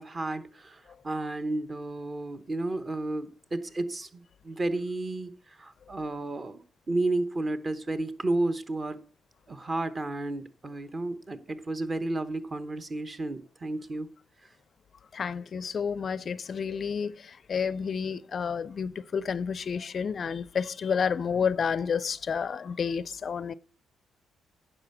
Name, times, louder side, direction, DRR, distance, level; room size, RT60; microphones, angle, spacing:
voice 1, 0.0-6.6 6.9-9.0 9.5-14.1, right 2 dB, 30° right, 1.1 m, -32 dB
voice 2, 15.1-23.5, left 6 dB, 45° left, 0.4 m, -30 dB
9.9 x 5.5 x 6.9 m
cardioid pair, 90°, 0 cm